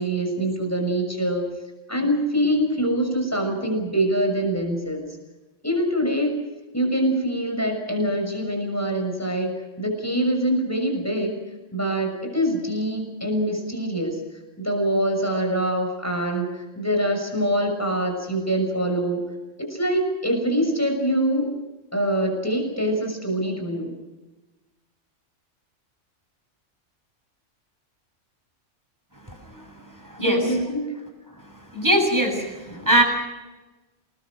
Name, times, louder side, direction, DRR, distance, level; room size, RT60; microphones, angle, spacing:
voice 1, 0.0-1.4 1.9-5.1 5.6-6.4 6.7-11.3 11.7-14.2 14.6-19.2 19.6-21.5 21.9-23.9 30.2-30.9 32.7-32.9, right 1 dB, 10° left, 3 dB, 6.4 m, -24 dB
voice 2, 29.3-30.4 31.7-33.0, right 1 dB, 15° right, 3 dB, 6.9 m, -22 dB
28.5 x 21.0 x 6.4 m, 1.1 s
omnidirectional pair, 1.3 m